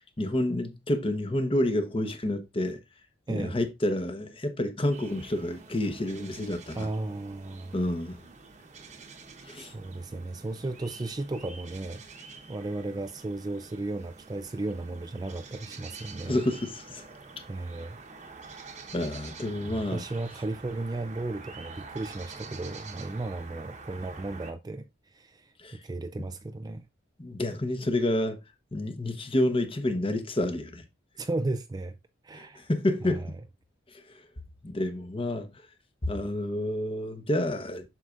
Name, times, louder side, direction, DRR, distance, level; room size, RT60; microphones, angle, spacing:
voice 1, 0.2-2.8 3.3-6.9 7.7-8.2 9.4-9.7 16.3-17.0 18.9-20.0 25.6-25.8 27.2-28.4 28.7-30.8 32.3-33.3 34.6-35.5 36.0-37.9, left 1 dB, 30° left, 1.0 m, -29 dB
voice 2, 3.3-3.6 6.7-7.9 9.6-12.0 12.5-16.4 17.5-18.0 19.6-26.9 31.2-32.0 32.2-32.7 33.0-33.3, right 2 dB, 20° right, 0.3 m, -35 dB
sound 1, 4.9-24.5, right 4 dB, 40° right, 1.1 m, -47 dB
7.6 x 6.6 x 2.5 m
head